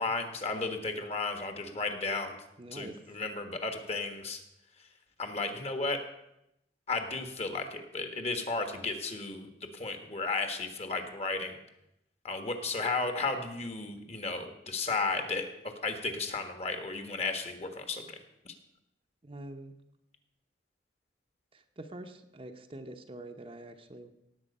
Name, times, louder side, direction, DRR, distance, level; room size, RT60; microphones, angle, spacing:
voice 1, 0.0-2.4 2.7-4.4 5.2-6.0 6.9-11.6 12.2-18.2 18.4-18.5, left 3 dB, 35° left, 7 dB, 1.4 m, -34 dB
voice 2, 2.6-3.0 19.2-19.7 21.5-24.1, right 1 dB, 30° right, 6 dB, 0.8 m, -45 dB
17.5 x 7.6 x 5.4 m, 0.85 s
head